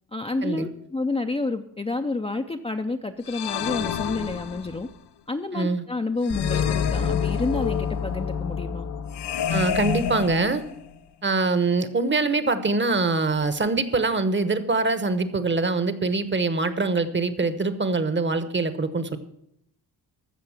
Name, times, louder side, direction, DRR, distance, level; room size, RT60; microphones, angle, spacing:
voice 1, 0.1-4.9 5.3-8.9, left 3 dB, 15° left, 5 dB, 0.5 m, -29 dB
sound 1, 3.2-4.9 6.2-7.9 9.1-11.0, left 9 dB, 90° left, 0.8 m, -30 dB
voice 2, 5.5-5.8 9.5-10.6 11.2-19.2, right 3 dB, 30° right, 12 dB, 1.0 m, -24 dB
sound 2, 6.3-10.1, left 6 dB, 50° left, 1.0 m, -28 dB
14.5 x 6.5 x 7.3 m, 0.76 s
wide cardioid pair, 125°, 39 cm